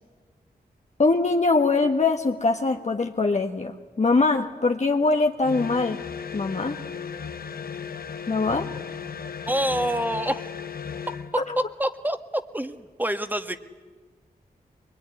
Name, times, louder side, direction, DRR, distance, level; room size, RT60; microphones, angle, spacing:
voice 1, 1.0-3.7 4.0-6.0 6.3-6.8 8.3-8.7, left 3 dB, 45° left, 3 dB, 1.5 m, -22 dB
sound 1, 5.4-11.4, left 6 dB, 65° left, 1.0 m, -35 dB
voice 2, 9.5-10.5 11.6-13.6, equal, 10° right, 9 dB, 1.7 m, -27 dB
22.5 x 22.5 x 9.9 m, 1.4 s
cardioid pair, 45°, 16 cm